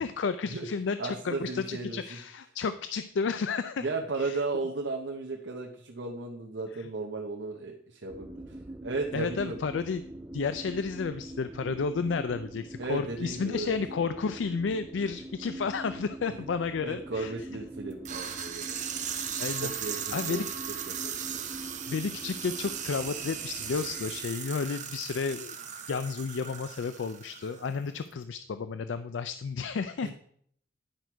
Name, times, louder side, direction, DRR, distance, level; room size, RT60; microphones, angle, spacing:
voice 1, 0.0-3.9 4.2-4.4 6.7-6.9 9.1-10.0 10.3-17.3 19.0-20.5 21.9-25.6 25.9-30.1, left 5 dB, 85° left, 11 dB, 0.4 m, -32 dB
voice 2, 1.0-2.0 3.8-8.6 8.8-9.6 12.8-13.7 16.8-18.8 19.6-20.4 20.9-21.4 30.0-30.1, right 3 dB, 75° right, 1 dB, 0.9 m, -35 dB
sound 1, 8.1-24.2, right 1 dB, 15° right, 0.4 m, -44 dB
sound 2, 18.0-27.8, right 8 dB, 40° right, 1.0 m, -37 dB
10.5 x 6.0 x 4.6 m, 0.65 s
head